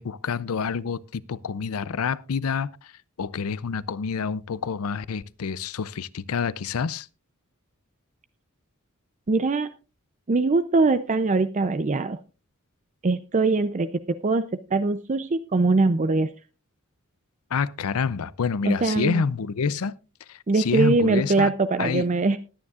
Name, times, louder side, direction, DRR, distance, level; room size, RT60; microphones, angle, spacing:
voice 1, 0.0-2.9 3.2-7.1 17.5-19.9 20.3-21.5 21.8-22.1, left 5 dB, 80° left, 0.5 m, -28 dB
voice 2, 9.3-9.7 10.3-12.2 13.0-16.3 18.7-19.2 20.5-22.4, right 3 dB, 35° right, 0.5 m, -22 dB
20.0 x 9.7 x 2.4 m
head